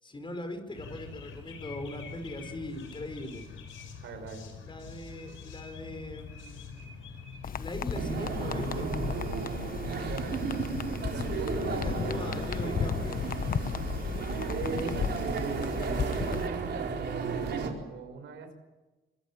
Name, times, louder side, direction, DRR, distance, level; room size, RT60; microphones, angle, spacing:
voice 1, 0.0-3.5 4.6-7.0 7.6-8.9 11.6-13.3, left 1 dB, 25° left, 8 dB, 5.4 m, -40 dB
sound 1, 0.7-7.8, left 6 dB, 80° left, 5.6 m, -45 dB
voice 2, 4.0-4.6 9.9-12.3 14.4-18.5, right 5 dB, 75° right, 7 dB, 5.5 m, -41 dB
sound 2, 7.4-16.5, left 7 dB, 45° left, 1.1 m, -35 dB
sound 3, 7.9-17.7, right 5 dB, 60° right, 4.5 m, -34 dB
25.5 x 22.0 x 7.6 m, 1.1 s
cardioid pair, 90°, 20 cm